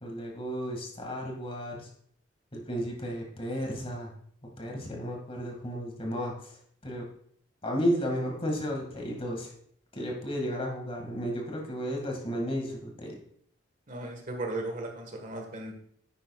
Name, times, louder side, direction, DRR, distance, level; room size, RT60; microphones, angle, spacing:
voice 1, 0.0-1.9 2.5-4.1 4.6-6.3 6.8-7.1 7.6-9.5 9.9-13.1, equal, 30° left, 0 dB, 2.1 m, -33 dB
voice 2, 13.9-15.7, right 2 dB, 45° right, 3 dB, 1.6 m, -36 dB
10.0 x 9.5 x 2.4 m, 0.63 s
head